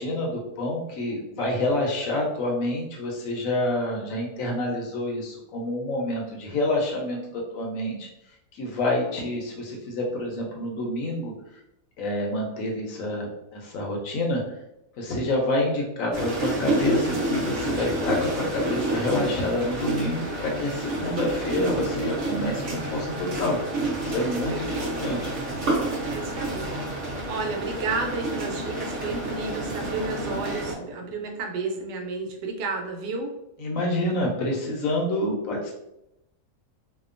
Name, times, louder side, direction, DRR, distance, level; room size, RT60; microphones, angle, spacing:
voice 1, 0.0-8.1 8.5-11.3 12.0-14.6 15.0-23.6 24.0-25.3 33.6-35.7, left 1 dB, 65° left, 0 dB, 0.9 m, -27 dB
sound 1, 16.1-30.7, right 2 dB, 60° right, 0.9 m, -29 dB
voice 2, 24.5-25.2 26.1-26.7 27.3-33.3, right 3 dB, 90° right, 3 dB, 1.2 m, -32 dB
2.8 x 2.2 x 2.4 m, 0.86 s
omnidirectional pair, 1.7 m